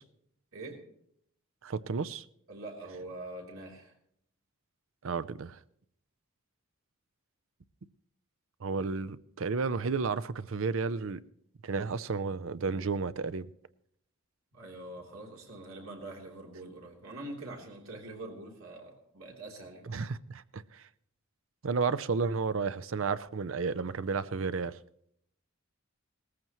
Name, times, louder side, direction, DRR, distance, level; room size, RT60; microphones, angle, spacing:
voice 1, 0.5-0.8 2.5-3.9 14.5-19.9, right 2 dB, 85° right, 3.3 m, -44 dB
voice 2, 1.6-2.2 5.0-5.6 8.6-11.2 11.6-13.5 19.9-20.8 21.6-24.8, right 4 dB, 65° right, 0.5 m, -32 dB
19.0 x 14.5 x 3.1 m
head